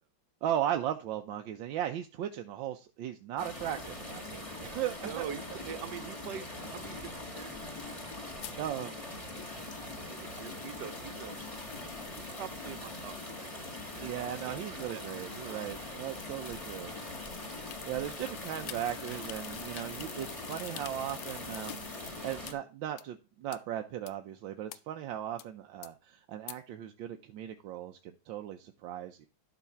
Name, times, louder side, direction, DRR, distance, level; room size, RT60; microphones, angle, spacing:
voice 1, 0.4-5.3 8.6-8.9 14.0-16.9 17.8-29.3, right 11 dB, 90° right, 5 dB, 1.4 m, -37 dB
sound 1, 3.4-22.5, left 1 dB, 20° left, 1.9 m, -42 dB
voice 2, 5.0-7.9 8.5-9.2 10.0-11.4 11.7-14.1 14.5-15.6, right 9 dB, 70° right, 13 dB, 1.2 m, -45 dB
sound 2, 8.4-22.5 23.0-23.1 23.5-23.6 24.1-24.2 24.7-24.8 25.4-25.5 25.8-25.9 26.5-26.6, left 12 dB, 70° left, 0.9 m, -49 dB
11.5 x 4.0 x 5.7 m, 0.31 s
omnidirectional pair, 2.0 m